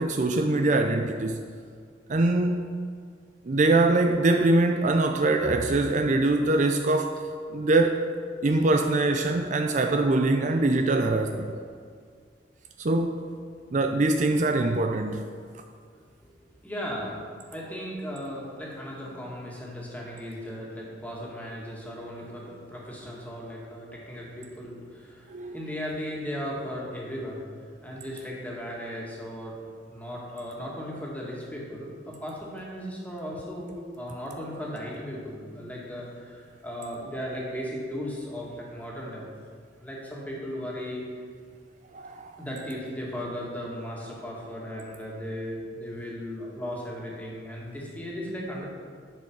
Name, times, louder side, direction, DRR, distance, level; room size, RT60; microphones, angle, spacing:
voice 1, 0.0-1.4 2.1-2.8 3.5-7.2 7.5-8.0 8.4-11.5 12.8-13.2 13.7-15.3 25.3-25.6 41.9-42.3, right 2 dB, 45° right, 5 dB, 0.5 m, -23 dB
voice 2, 16.6-17.2 17.5-27.5 27.8-29.6 29.9-39.3 39.8-41.0 42.4-48.6, equal, 10° left, -4 dB, 2.2 m, -36 dB
11.0 x 6.9 x 4.7 m, 2.1 s
head